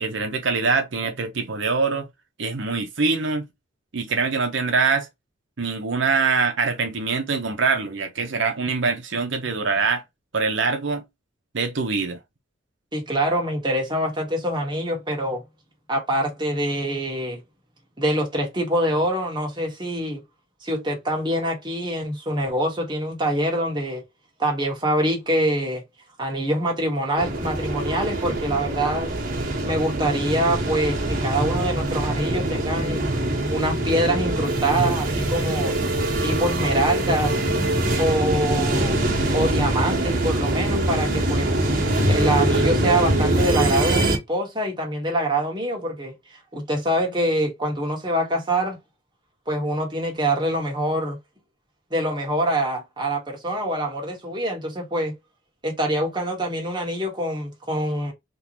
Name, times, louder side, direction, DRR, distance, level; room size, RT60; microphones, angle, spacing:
voice 1, 0.0-2.1 2.4-3.4 3.9-5.1 5.6-10.0 10.3-11.0 11.5-12.2, right 4 dB, 70° right, 0.8 m, -24 dB
voice 2, 12.9-15.4 15.9-17.4 18.0-20.2 20.6-24.0 24.4-25.8 26.2-29.1 29.6-33.1 33.5-35.7 36.2-37.4 38.0-39.0 39.3-41.6 42.1-48.8 49.5-51.2 51.9-55.1 55.6-58.1, right 1 dB, 20° right, 1.4 m, -25 dB
sound 1, 27.2-44.2, right 1 dB, 45° right, 1.4 m, -23 dB
3.7 x 3.0 x 2.9 m
head